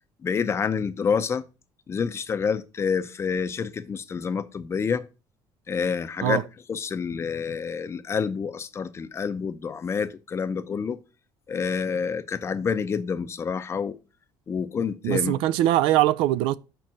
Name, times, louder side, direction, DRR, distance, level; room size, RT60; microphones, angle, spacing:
voice 1, 0.2-1.4 1.9-5.0 5.7-6.4 6.7-11.0 11.5-13.9 14.5-15.3, left 6 dB, 30° left, 0.6 m, -28 dB
voice 2, 15.0-16.5, right 14 dB, 90° right, 0.4 m, -21 dB
5.2 x 4.5 x 6.0 m
cardioid pair, 125°, 9 cm